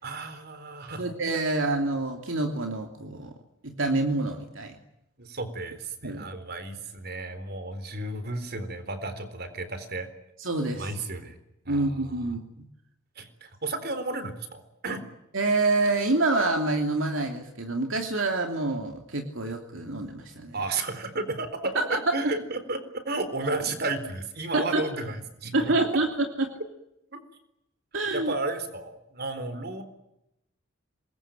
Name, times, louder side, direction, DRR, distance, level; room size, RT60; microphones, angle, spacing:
voice 1, 0.0-1.1 5.2-10.1 10.7-11.4 11.7-12.3 13.2-15.0 20.5-25.9 27.1-27.2 28.1-29.8, right 2 dB, 50° right, 10 dB, 4.0 m, -33 dB
voice 2, 1.0-3.3 3.6-4.7 6.0-6.2 10.4-10.9 11.7-12.6 15.3-20.5 21.7-22.1 24.5-24.8 25.5-26.5 27.9-28.3, right 2 dB, 70° right, 4 dB, 2.9 m, -27 dB
26.5 x 21.5 x 9.1 m, 0.85 s
head